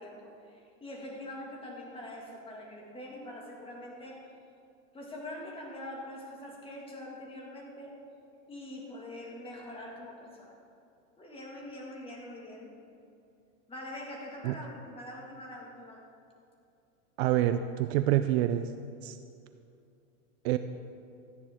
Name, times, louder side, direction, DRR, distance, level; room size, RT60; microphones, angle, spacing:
voice 1, 0.0-4.2 4.9-7.9 8.5-10.6 11.2-12.7 13.7-16.0, left 1 dB, 15° left, -1 dB, 1.9 m, -44 dB
voice 2, 17.2-18.7 19.0-19.2 20.4-20.6, right 13 dB, 55° right, 10 dB, 0.5 m, -26 dB
13.5 x 9.6 x 3.6 m, 2.6 s
supercardioid pair, 135°, 39 cm